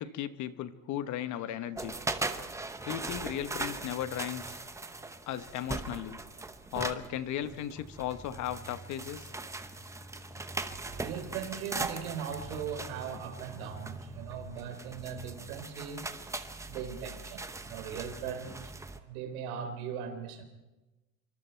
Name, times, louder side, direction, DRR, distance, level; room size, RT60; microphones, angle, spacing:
voice 1, 0.0-1.9 2.8-4.6 5.3-6.2 6.7-9.3, left 11 dB, 40° left, 1.1 m, -36 dB
sound 1, 1.8-19.0, right 3 dB, 5° right, 0.9 m, -40 dB
voice 2, 10.9-16.1 16.7-20.4, right 7 dB, 80° right, 3.6 m, -39 dB
26.0 x 24.5 x 4.5 m
supercardioid pair, 135°, 43 cm